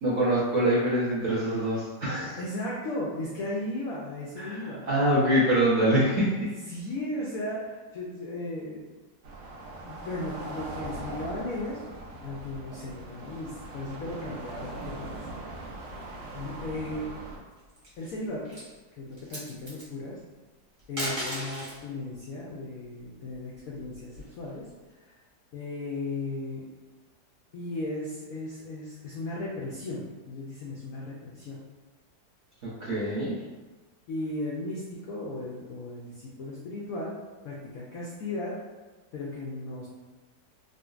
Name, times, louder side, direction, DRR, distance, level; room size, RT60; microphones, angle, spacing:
voice 1, 0.0-2.4 4.4-4.6 4.9-6.5 32.6-33.3, right 1 dB, 50° right, -9 dB, 0.9 m, -24 dB
voice 2, 2.3-4.8 6.7-8.8 9.8-11.8 12.2-15.3 15.5-15.7 16.3-17.2 18.0-18.5 19.0-20.2 20.9-24.6 25.0-25.1 25.5-26.6 27.5-31.6 34.1-37.1 37.4-38.5 39.1-39.9, left 2 dB, 85° left, -4 dB, 0.7 m, -36 dB
sound 1, 9.2-17.4, right 2 dB, 75° right, 1.1 m, -40 dB
sound 2, 17.6-18.1 18.4-18.7 19.1-19.9 20.8-21.8 23.3-24.5, equal, 25° right, 0.8 m, -36 dB
3.8 x 2.1 x 2.4 m, 1.2 s
omnidirectional pair, 2.0 m